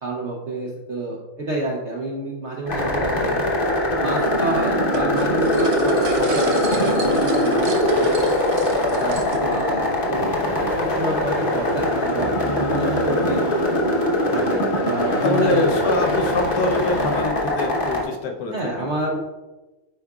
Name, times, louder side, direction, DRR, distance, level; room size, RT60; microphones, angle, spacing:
voice 1, 0.0-3.4 4.0-8.3 8.9-10.3 10.6-13.4 14.3-15.7 16.2-16.3 18.5-19.2, right 2 dB, 80° right, -2 dB, 0.6 m, -29 dB
sound 1, 2.7-18.0, left 1 dB, 40° left, 0.9 m, -22 dB
sound 2, 4.9-9.6, right 4 dB, 60° right, 1.0 m, -34 dB
sound 3, 10.1-17.2, equal, 85° left, 0.3 m, -32 dB
voice 2, 15.2-18.9, left 3 dB, 65° left, 3 dB, 1.1 m, -24 dB
9.1 x 4.7 x 2.3 m, 1.2 s
omnidirectional pair, 2.2 m